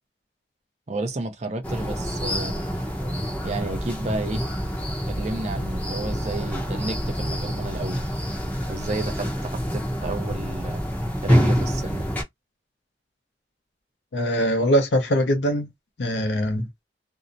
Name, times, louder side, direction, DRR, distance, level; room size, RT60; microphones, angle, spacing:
voice 1, 0.9-2.6 3.4-4.4 5.1-8.1 8.7-10.8 11.2-12.1, right 2 dB, 40° right, 0.5 m, -31 dB
sound 1, 1.6-12.2, equal, 10° left, 0.6 m, -27 dB
voice 2, 14.1-15.7 16.0-16.7, equal, 85° left, 0.6 m, -22 dB
2.6 x 2.0 x 2.5 m
head